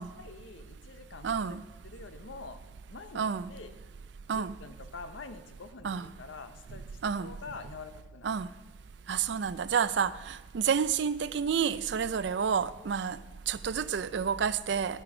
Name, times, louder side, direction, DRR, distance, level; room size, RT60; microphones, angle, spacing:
voice 1, 0.0-1.6 1.8-2.6 2.9-3.7 4.3-8.4, left 4 dB, 80° left, 0.8 m, -46 dB
voice 2, 1.2-1.6 3.1-3.5 4.3-4.6 5.8-6.1 7.0-7.3 8.2-8.5 9.1-13.2 13.5-15.0, right 7 dB, 65° right, 0.4 m, -30 dB
11.0 x 9.2 x 4.9 m
head